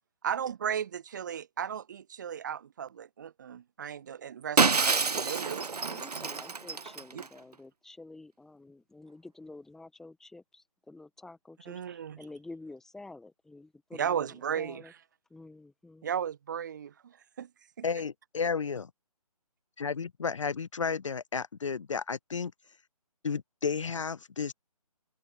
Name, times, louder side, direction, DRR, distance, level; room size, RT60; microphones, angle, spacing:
voice 1, 0.2-6.3 7.1-7.2 11.7-12.2 14.0-14.8 16.0-17.5, right 8 dB, 30° right, 0.7 m, -35 dB
Shatter, 4.6-7.3, right 4 dB, 90° right, 0.5 m, -27 dB
voice 2, 5.8-14.9 15.3-16.1, left 2 dB, ahead, 1.7 m, -49 dB
voice 3, 17.8-18.9 19.8-22.5 23.2-24.5, left 5 dB, 55° left, 0.6 m, -32 dB
figure-of-eight pair, 145°, 19 cm